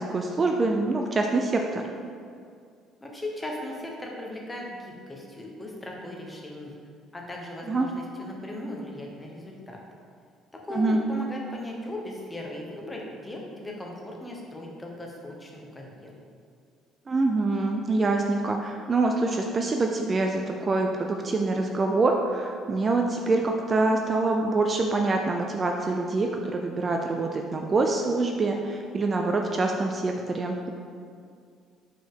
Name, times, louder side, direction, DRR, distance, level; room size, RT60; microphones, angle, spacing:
voice 1, 0.0-1.9 7.7-7.9 10.7-11.0 17.1-30.7, right 3 dB, 30° right, 2 dB, 0.4 m, -25 dB
voice 2, 3.0-6.7 7.1-9.8 10.6-16.1, left 1 dB, 15° left, -1 dB, 1.0 m, -38 dB
5.6 x 5.0 x 3.7 m, 2.3 s
cardioid pair, 120°, 0 cm